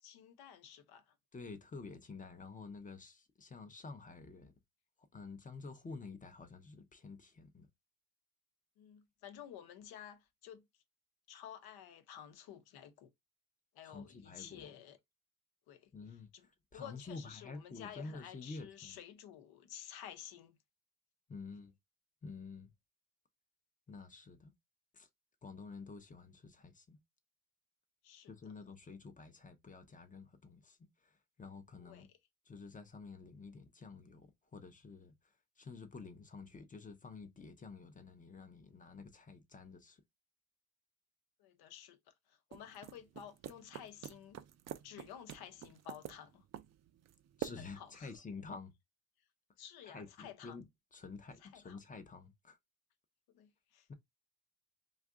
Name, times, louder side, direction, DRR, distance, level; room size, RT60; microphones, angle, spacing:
voice 1, 0.0-1.1 8.8-10.7 11.3-13.1 13.7-15.0 15.7-15.9 16.3-16.5 16.7-20.6 28.0-28.3 31.8-32.1 41.4-44.4 44.8-46.4 47.6-48.1 49.6-50.6 51.4-51.8 53.3-53.9, left 9 dB, 80° left, 0.8 m, -52 dB
voice 2, 1.3-4.5 5.1-7.7 13.8-14.7 15.9-16.3 16.7-19.0 21.3-21.7 22.2-22.7 23.9-24.5 24.9-25.1 25.4-27.0 28.3-32.1 32.5-40.0 47.4-48.7 49.8-50.7 50.9-52.6 53.9-54.0, left 4 dB, 20° left, 0.6 m, -50 dB
sound 1, 42.5-48.0, right 11 dB, 45° right, 0.5 m, -48 dB
2.6 x 2.4 x 3.5 m
cardioid pair, 105°, 37 cm